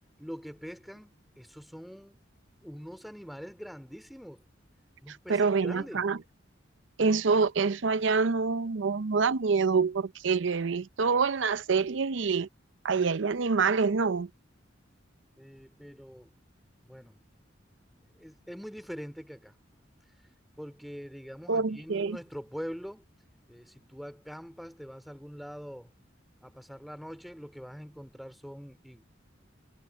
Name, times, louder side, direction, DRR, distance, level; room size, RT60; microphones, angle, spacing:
voice 1, 0.2-2.2 2.5-4.4 5.0-6.1 15.4-16.3 16.8-17.2 18.1-19.5 20.6-23.0 23.5-25.9 26.4-29.0, equal, ahead, 2.9 m, -44 dB
voice 2, 5.1-6.2 7.0-12.5 12.8-14.3 21.5-22.2, right 5 dB, 70° right, 0.6 m, -26 dB
head